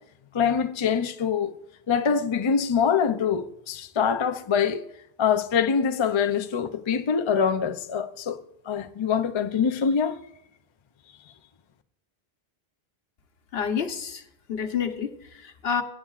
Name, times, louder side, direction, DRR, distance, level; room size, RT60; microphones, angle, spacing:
voice 1, 0.3-1.5 1.9-4.8 5.2-8.4 8.7-10.2, left 6 dB, 40° left, 0.4 m, -24 dB
voice 2, 13.5-14.2 14.5-15.8, left 7 dB, 75° left, 1.1 m, -29 dB
17.0 x 8.4 x 2.4 m
omnidirectional pair, 1.1 m